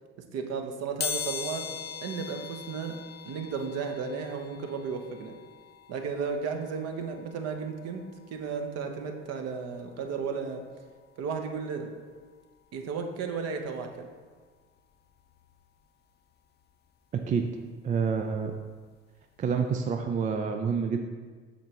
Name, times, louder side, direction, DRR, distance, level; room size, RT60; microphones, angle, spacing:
voice 1, 0.3-1.7 2.0-3.0 3.2-5.4 5.9-10.6 11.2-11.9 12.7-14.1, right 5 dB, 45° right, 4 dB, 1.0 m, -34 dB
sound 1, 1.0-11.7 12.1-12.2 13.4-13.5 13.8-15.9 16.2-18.8 19.2-19.4 19.7-19.8, left 7 dB, 30° left, 0.7 m, -42 dB
voice 2, 17.8-18.5 19.4-21.0, right 6 dB, 20° right, 4 dB, 0.4 m, -28 dB
8.3 x 6.7 x 2.9 m, 1.5 s
figure-of-eight pair, 60°, 35 cm